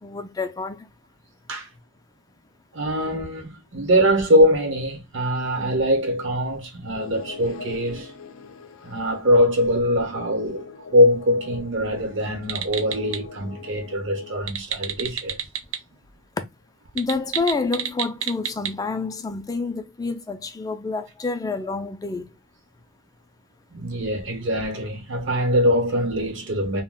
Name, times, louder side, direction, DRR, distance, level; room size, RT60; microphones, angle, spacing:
voice 1, 0.0-0.9 16.9-22.3, left 3 dB, 20° left, 0.3 m, -28 dB
voice 2, 2.7-8.1 8.8-15.4 23.7-26.8, equal, 60° right, 0.9 m, -22 dB
sound 1, 7.0-14.5, left 5 dB, 80° left, 0.4 m, -42 dB
sound 2, 12.4-13.2 14.3-15.8 16.1-16.2 16.9-18.7, right 8 dB, 85° right, 0.5 m, -30 dB
2.3 x 2.1 x 3.5 m
head